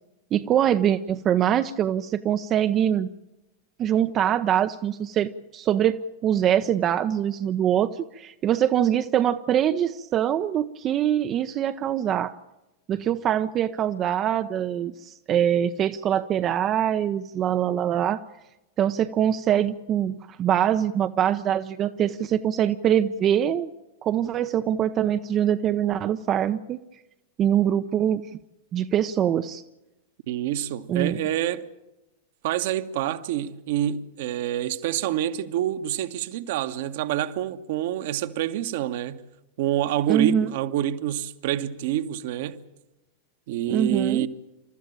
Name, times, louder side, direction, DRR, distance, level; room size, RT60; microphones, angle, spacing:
voice 1, 0.3-3.1 3.8-12.3 12.9-18.2 18.8-23.7 24.0-26.8 27.4-28.2 28.7-29.6 30.9-31.2 40.1-40.5 43.7-44.3, right 10 dB, 30° right, 0.7 m, -23 dB
voice 2, 30.3-31.6 32.4-39.2 39.6-42.6 43.5-44.3, right 12 dB, 55° right, 1.2 m, -27 dB
28.5 x 14.0 x 8.8 m
figure-of-eight pair, 90°, 0 cm